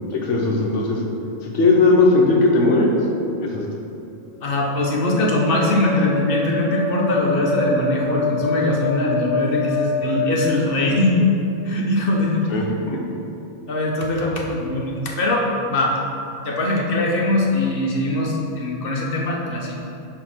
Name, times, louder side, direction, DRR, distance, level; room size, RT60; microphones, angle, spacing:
voice 1, 0.1-1.0 1.4-2.9 3.4-3.6 12.5-13.0, left 3 dB, 70° left, -1 dB, 1.2 m, -17 dB
voice 2, 4.4-11.2 11.6-12.5 13.7-16.0 16.4-19.8, left 2 dB, 50° left, -2 dB, 1.0 m, -21 dB
sound 1, 4.4-11.2, left 2 dB, 60° right, 2.0 m, -26 dB
4.6 x 4.3 x 5.9 m, 2.7 s
omnidirectional pair, 1.3 m